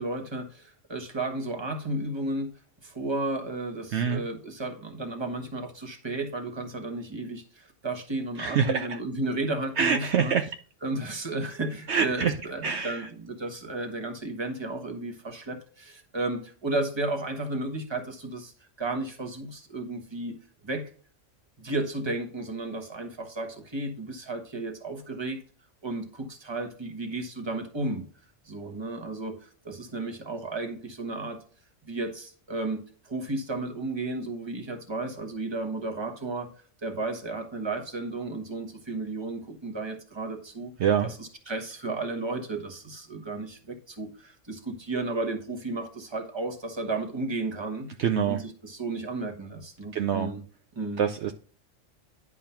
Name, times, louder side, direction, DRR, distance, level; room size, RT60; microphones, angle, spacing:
voice 1, 0.0-2.5 2.8-10.4 10.8-18.5 18.8-20.4 20.6-20.8 21.6-25.4 25.8-28.0 28.4-31.4 31.8-36.5 36.8-40.7 41.0-47.9 48.3-48.4 48.6-50.4 50.7-51.0, right 2 dB, 20° right, 4 dB, 1.2 m, -33 dB
voice 2, 3.9-4.2 8.4-9.0 9.8-10.5 11.9-12.4 12.6-13.1 40.8-41.1 48.0-48.4 49.9-50.3 51.0-51.3, right 7 dB, 65° right, 6 dB, 0.8 m, -25 dB
10.5 x 3.7 x 5.6 m, 0.43 s
omnidirectional pair, 1.3 m